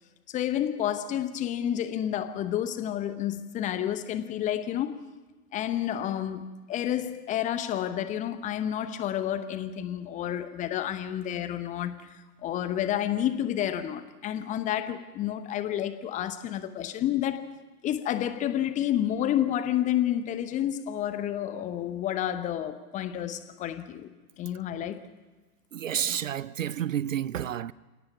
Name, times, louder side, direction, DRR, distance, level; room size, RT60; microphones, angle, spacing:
voice 1, 0.3-5.0 5.5-17.5 17.8-24.1 24.4-25.0, left 11 dB, 15° left, 0.9 m, -30 dB
voice 2, 25.7-27.7, right 10 dB, 55° right, 0.6 m, -30 dB
29.5 x 17.5 x 6.0 m
figure-of-eight pair, 110°, 48 cm